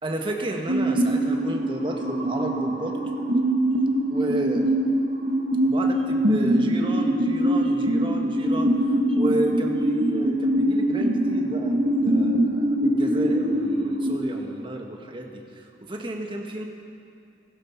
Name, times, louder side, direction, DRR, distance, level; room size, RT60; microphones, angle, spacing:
voice 1, 0.0-3.0 4.1-4.7 5.6-8.7 9.1-16.6, right 1 dB, 30° right, 2 dB, 1.4 m, -32 dB
sound 1, 0.7-14.1, right 1 dB, 65° right, 1.8 m, -23 dB
16.0 x 14.5 x 5.8 m, 2.5 s
head